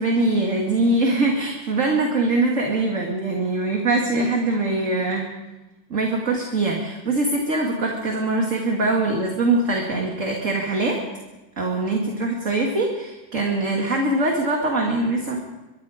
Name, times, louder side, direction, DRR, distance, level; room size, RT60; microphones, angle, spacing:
voice 1, 0.0-5.3 5.9-11.0 11.6-15.4, right 2 dB, 40° right, 0 dB, 2.6 m, -22 dB
24.5 x 22.5 x 5.1 m, 1.1 s
omnidirectional pair, 2.1 m